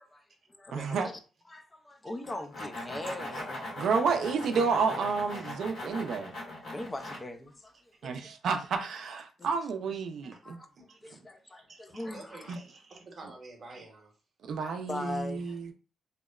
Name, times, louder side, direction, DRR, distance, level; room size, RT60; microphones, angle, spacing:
voice 1, 0.1-1.1 1.5-4.0 6.6-8.2 9.4-9.5 10.4-10.6 11.0-12.6 14.6-15.6, left 1 dB, 20° left, 0.3 m, -41 dB
voice 2, 0.7-1.1 3.8-6.3 8.0-10.6 12.5-12.6 14.4-15.7, right 5 dB, 65° right, 0.4 m, -30 dB
sound 1, 2.2-7.2, left 1 dB, 55° left, 1.3 m, -40 dB
voice 3, 10.6-14.1, right 3 dB, 35° right, 0.8 m, -51 dB
2.8 x 2.0 x 2.3 m
cardioid pair, 150°, 0 cm